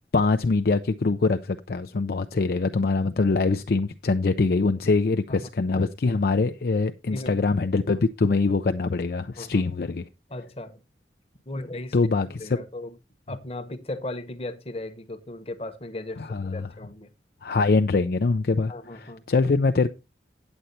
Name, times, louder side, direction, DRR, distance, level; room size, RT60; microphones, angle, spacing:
voice 1, 0.1-10.1 11.9-12.6 16.2-16.7 17.4-19.9, left 3 dB, 55° left, 0.4 m, -23 dB
voice 2, 7.1-7.4 7.9-8.0 9.4-9.6 10.3-10.8 11.5-12.0 12.4-12.9 13.3-16.2 16.5-17.1 18.7-19.2, left 2 dB, 35° left, 1.1 m, -36 dB
8.9 x 8.0 x 4.2 m
head